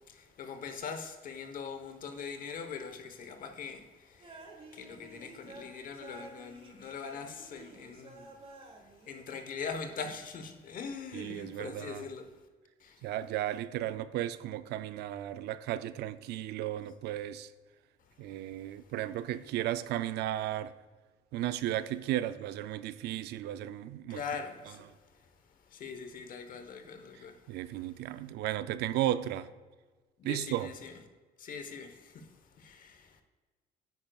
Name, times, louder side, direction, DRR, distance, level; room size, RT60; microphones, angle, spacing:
voice 1, 0.0-4.5 4.7-8.7 9.0-12.3 12.8-13.1 24.1-24.9 25.1-25.2 25.7-27.4 30.2-30.9 31.4-33.2, left 5 dB, 55° left, 1.0 m, -42 dB
sound 1, 4.2-9.4, right 2 dB, 35° right, 1.4 m, -52 dB
voice 2, 11.1-12.1 13.0-17.5 18.2-20.7 21.3-24.2 27.5-29.5 30.2-30.7, right 13 dB, 75° right, 0.4 m, -34 dB
9.6 x 8.9 x 2.3 m
cardioid pair, 110°, 17 cm